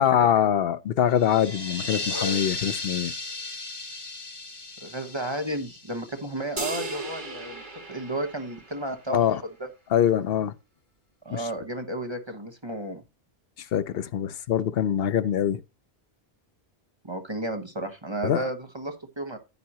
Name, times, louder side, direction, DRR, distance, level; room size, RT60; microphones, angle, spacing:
voice 1, 0.0-3.1 9.1-9.4 9.9-10.5 11.3-11.5 13.6-15.6 18.2-18.5, left 9 dB, 70° left, 0.9 m, -24 dB
sound 1, 1.1-6.7, left 3 dB, 25° left, 1.0 m, -35 dB
voice 2, 4.8-7.6 7.9-9.2 9.6-9.7 11.2-13.0 17.0-19.4, right 1 dB, 25° right, 1.2 m, -33 dB
sound 2, 6.6-9.1, right 2 dB, 50° right, 1.7 m, -36 dB
9.4 x 9.4 x 2.9 m
omnidirectional pair, 1.0 m